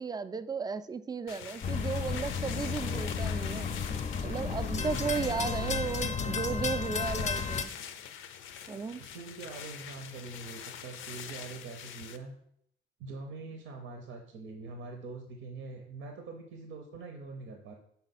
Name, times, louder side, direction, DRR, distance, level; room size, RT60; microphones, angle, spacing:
voice 1, 0.0-3.8 4.2-7.7 8.7-9.1, right 5 dB, 20° right, 12 dB, 0.3 m, -35 dB
sound 1, 1.3-12.2, left 9 dB, 85° left, 0.5 m, -44 dB
sound 2, 1.6-7.6, left 5 dB, 35° left, 0.5 m, -33 dB
voice 2, 4.2-6.7 9.0-12.3 13.0-17.7, right 3 dB, 85° right, 3 dB, 0.7 m, -44 dB
5.5 x 4.2 x 4.1 m, 0.71 s
cardioid pair, 90°, 20 cm